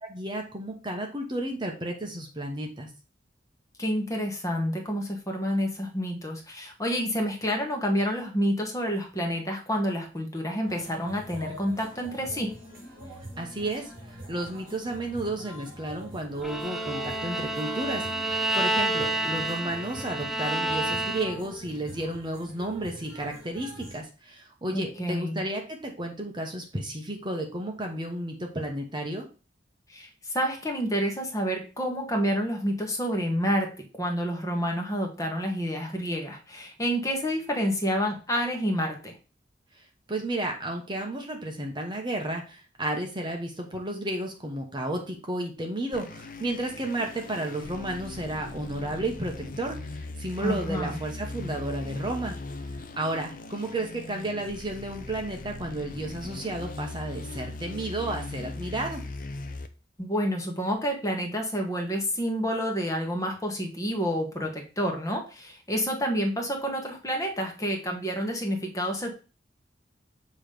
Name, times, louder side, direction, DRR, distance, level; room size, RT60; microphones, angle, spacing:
voice 1, 0.1-2.9 13.4-13.9 14.3-29.3 39.7-39.8 40.1-52.4 53.0-59.0, right 1 dB, 25° right, 2 dB, 1.0 m, -32 dB
voice 2, 3.8-12.5 24.7-25.4 29.9-33.7 34.0-39.1 50.4-51.0 60.0-69.1, equal, 15° left, 1 dB, 1.2 m, -29 dB
sound 1, 10.6-24.0, equal, 45° right, 3.6 m, -44 dB
Bowed string instrument, 16.4-21.6, right 2 dB, ahead, 0.5 m, -29 dB
sound 2, 45.9-59.7, left 2 dB, 45° left, 0.6 m, -39 dB
7.2 x 3.1 x 5.0 m, 0.34 s
head